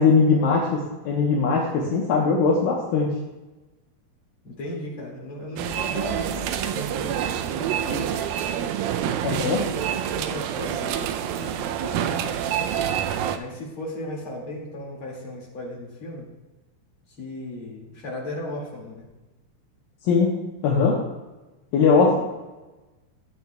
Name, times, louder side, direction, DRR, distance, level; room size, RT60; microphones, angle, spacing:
voice 1, 0.0-3.1 9.2-9.6 20.0-20.4 20.6-21.0 21.7-22.2, left 4 dB, 75° left, -3 dB, 2.5 m, -20 dB
voice 2, 4.4-8.2 8.9-12.4 13.3-16.3 17.2-19.1 22.0-22.2, left 1 dB, 40° left, -3 dB, 2.4 m, -36 dB
sound 1, 5.6-13.4, right 9 dB, 80° right, 2.2 m, -27 dB
13.0 x 8.1 x 2.3 m, 1.1 s
omnidirectional pair, 4.4 m